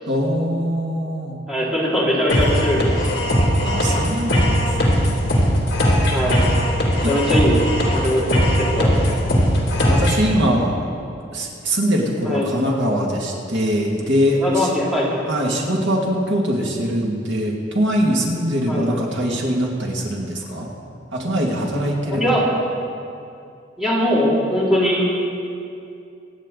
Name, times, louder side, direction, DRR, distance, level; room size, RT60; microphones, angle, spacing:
voice 1, 0.1-1.4 3.6-5.6 7.0-7.1 9.9-10.8 11.3-14.7 15.3-20.7 21.1-22.3, equal, 70° right, -2 dB, 2.2 m, -22 dB
voice 2, 1.5-3.1 6.1-6.5 6.9-8.3 8.6-8.9 12.3-12.5 14.4-15.2 18.7-18.9 22.1-22.5 23.8-25.1, equal, ahead, -7 dB, 2.6 m, -21 dB
sound 1, 2.3-10.3, equal, 60° left, 2.6 m, -19 dB
25.0 x 9.1 x 3.9 m, 2.5 s
head